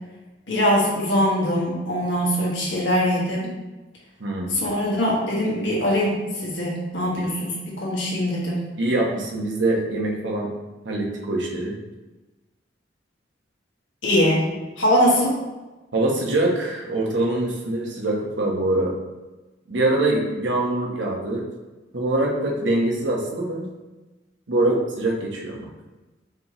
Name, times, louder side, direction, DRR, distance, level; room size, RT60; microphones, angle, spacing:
voice 1, 0.5-3.5 4.5-8.6 14.0-14.5 14.8-15.3, equal, 90° left, -4 dB, 1.4 m, -22 dB
voice 2, 4.2-4.5 7.1-7.2 8.8-10.5 10.8-11.7 15.9-19.0 19.7-21.5 21.9-23.7 24.5-25.7, right 2 dB, 80° right, -1 dB, 1.0 m, -24 dB
4.9 x 3.3 x 2.9 m, 1.1 s
head